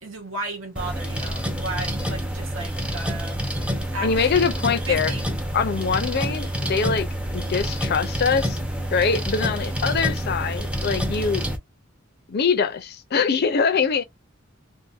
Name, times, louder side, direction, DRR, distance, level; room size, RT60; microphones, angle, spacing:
voice 1, 0.0-3.4 3.9-4.3 4.9-5.3, right 2 dB, 75° right, 1.1 m, -34 dB
sound 1, 0.8-11.6, equal, 5° right, 0.6 m, -28 dB
voice 2, 4.0-5.1 5.5-7.1 7.3-8.6 8.9-11.5 12.3-14.0, left 5 dB, 50° left, 0.5 m, -23 dB
2.7 x 2.5 x 2.4 m
head